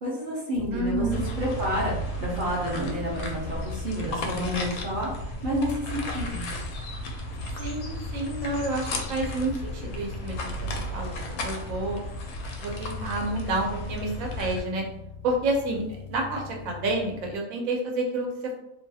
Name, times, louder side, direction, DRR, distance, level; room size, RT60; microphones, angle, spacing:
voice 1, 0.0-1.1 1.4-6.5, equal, 50° right, -5 dB, 0.6 m, -30 dB
sound 1, 0.5-17.4, right 3 dB, 65° left, 0.7 m, -40 dB
voice 2, 0.7-1.2 7.6-12.0 12.6-14.9 15.2-15.8 16.1-18.6, right 2 dB, 75° right, 1 dB, 1.1 m, -29 dB
sound 2, 1.1-14.6, left 2 dB, 85° left, 1.0 m, -35 dB
2.7 x 2.3 x 2.6 m, 0.83 s
omnidirectional pair, 1.4 m